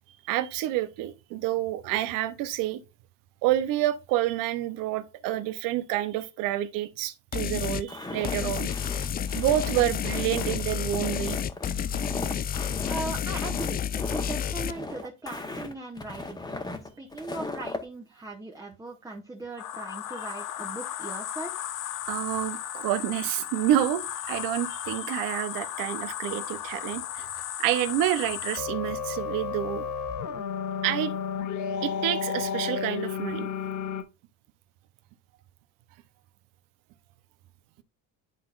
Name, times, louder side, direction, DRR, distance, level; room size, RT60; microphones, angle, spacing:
voice 1, 0.1-2.8 3.4-8.7 9.3-11.4 22.1-27.3 27.6-29.9 30.8-31.1 31.8-33.5, right 13 dB, 75° right, 0.9 m, -28 dB
sound 1, 7.3-7.9 8.2-14.7, left 8 dB, 30° left, 0.4 m, -30 dB
Walk footsteps, 7.9-17.8, left 2 dB, 10° left, 1.2 m, -37 dB
voice 2, 12.9-16.4 17.0-21.7, right 2 dB, 10° right, 1.0 m, -39 dB
sound 2, 19.6-34.0, left 8 dB, 60° left, 0.9 m, -34 dB
11.0 x 3.9 x 2.5 m
cardioid pair, 110°, 33 cm